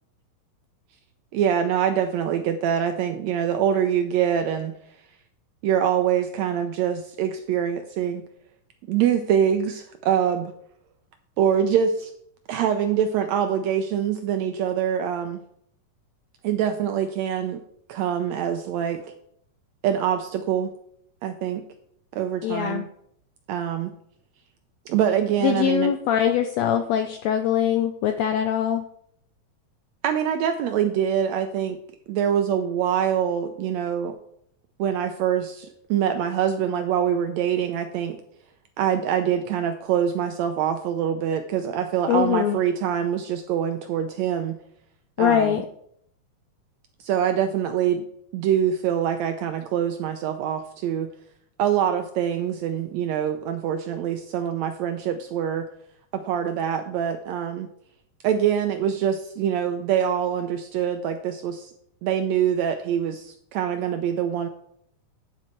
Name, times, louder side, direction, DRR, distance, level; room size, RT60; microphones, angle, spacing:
voice 1, 1.3-4.7 5.6-8.2 8.9-10.5 11.4-12.1 12.5-15.4 16.4-17.6 17.9-19.0 19.8-20.7 21.2-21.6 22.1-22.9 23.5-23.9 24.9-25.9 30.0-31.8 32.1-34.2 34.8-38.2 38.8-44.6 45.2-45.6 47.0-48.0 48.3-51.1 51.6-55.7 56.1-57.7 58.2-61.7 62.0-64.5, right 9 dB, 80° right, 7 dB, 1.6 m, -24 dB
voice 2, 22.4-22.8 25.4-28.8 42.1-42.6 45.2-45.6, left 9 dB, 80° left, 6 dB, 1.5 m, -22 dB
9.8 x 7.3 x 4.5 m, 0.69 s
omnidirectional pair, 3.7 m